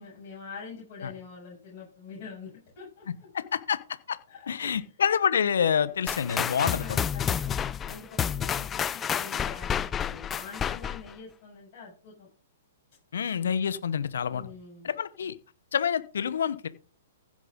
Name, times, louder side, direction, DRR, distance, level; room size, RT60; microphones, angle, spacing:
voice 1, 0.0-3.0 4.3-4.8 6.6-12.3 14.2-14.9, left 5 dB, 45° left, -4 dB, 7.2 m, -45 dB
voice 2, 3.3-3.8 4.1-4.2 4.5-7.0 13.1-14.5 14.8-15.3 15.7-16.7, left 7 dB, 70° left, 16 dB, 1.0 m, -27 dB
sound 1, 6.1-11.1, left 8 dB, 20° left, 0.5 m, -30 dB
15.5 x 7.4 x 3.8 m, 0.37 s
hypercardioid pair, 120°, 0 cm